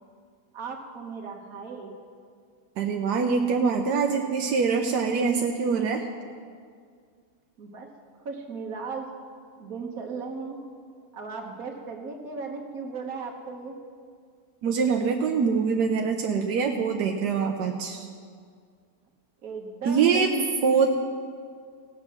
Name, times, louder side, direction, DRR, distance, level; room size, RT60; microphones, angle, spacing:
voice 1, 0.5-2.0 7.6-7.9 8.3-9.1 9.6-10.6 11.1-13.8 19.4-20.9, right 4 dB, 60° right, 2 dB, 1.7 m, -36 dB
voice 2, 2.8-6.1 14.6-18.1 19.8-20.3 20.6-20.9, right 5 dB, 85° right, 3 dB, 1.3 m, -24 dB
17.0 x 7.6 x 6.1 m, 2.1 s
omnidirectional pair, 1.7 m